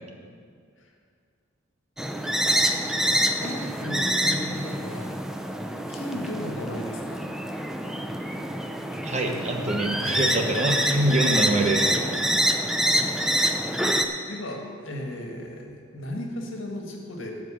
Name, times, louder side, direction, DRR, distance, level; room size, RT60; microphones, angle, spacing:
sound 1, 2.0-14.1, equal, ahead, 0.5 m, -26 dB
voice 1, 3.4-5.1 5.9-7.2 13.3-13.5 14.3-17.3, left 1 dB, 70° left, 1 dB, 1.8 m, -35 dB
Keyboard (musical), 3.8-6.6, left 1 dB, 30° left, 1.6 m, -40 dB
voice 2, 9.0-11.9, right 1 dB, 35° right, 3 dB, 1.0 m, -24 dB
12.5 x 4.8 x 8.6 m, 2.2 s
head